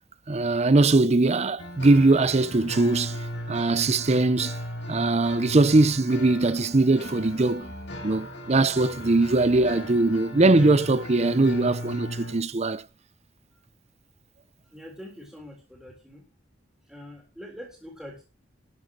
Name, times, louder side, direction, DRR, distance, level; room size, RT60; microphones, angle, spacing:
voice 1, 0.3-3.2 3.5-4.6 4.9-7.7 8.0-12.8, right 2 dB, 30° right, 0.6 m, -21 dB
sound 1, 1.6-12.3, left 1 dB, 60° left, 4.5 m, -37 dB
voice 2, 14.7-16.3 16.9-18.2, equal, ahead, 3.8 m, -44 dB
12.5 x 7.9 x 6.2 m
head